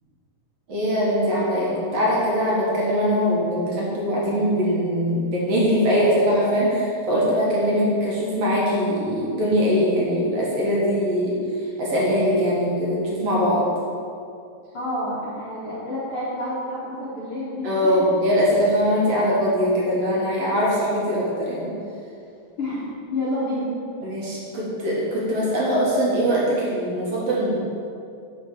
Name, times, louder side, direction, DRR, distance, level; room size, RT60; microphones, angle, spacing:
voice 1, 0.7-11.4 11.8-13.7 17.6-21.7 24.0-27.6, equal, 55° right, -5 dB, 2.0 m, -22 dB
voice 2, 14.7-17.9 22.6-22.8 23.1-23.7, left 1 dB, 60° left, -10 dB, 1.4 m, -29 dB
7.9 x 5.5 x 6.4 m, 2.5 s
omnidirectional pair, 4.9 m